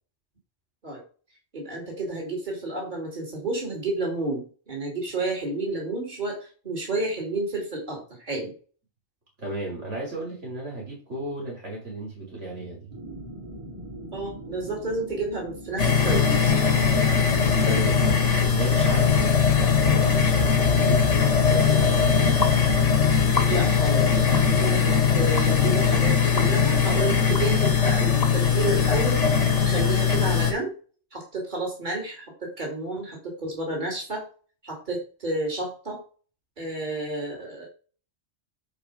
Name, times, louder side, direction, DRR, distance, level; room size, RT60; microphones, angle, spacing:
voice 1, 1.5-8.5 14.1-16.7 23.5-29.3 29.6-30.8 31.1-34.2 34.6-36.0 36.6-37.7, right 2 dB, 40° right, -1 dB, 3.4 m, -31 dB
voice 2, 9.4-12.9 17.6-22.3, right 2 dB, 90° right, -3 dB, 4.8 m, -34 dB
sound 1, 12.9-26.5, right 1 dB, 25° right, 2.0 m, -42 dB
sound 2, 15.8-30.5, left 6 dB, 85° left, 1.9 m, -20 dB
sound 3, 22.4-22.6 23.3-23.8 24.3-24.5 25.4-25.5 26.4-26.5 27.3-27.5 28.2-28.3, left 4 dB, 35° left, 1.1 m, -29 dB
10.5 x 4.8 x 5.1 m, 0.39 s
omnidirectional pair, 1.2 m